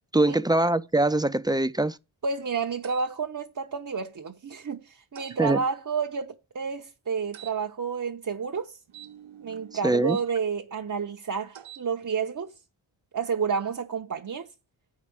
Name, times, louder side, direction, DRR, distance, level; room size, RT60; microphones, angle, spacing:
voice 1, 0.1-2.0 5.4-5.6 9.8-10.2, right 2 dB, 10° right, 0.5 m, -23 dB
voice 2, 2.2-8.8 9.4-12.5 13.1-14.5, right 6 dB, 40° right, 0.9 m, -30 dB
sound 1, 2.8-3.1 5.2-5.4 7.3-7.6 8.9-10.3 11.5-11.9, right 10 dB, 80° right, 1.1 m, -46 dB
9.0 x 4.9 x 7.0 m
wide cardioid pair, 85°, 47 cm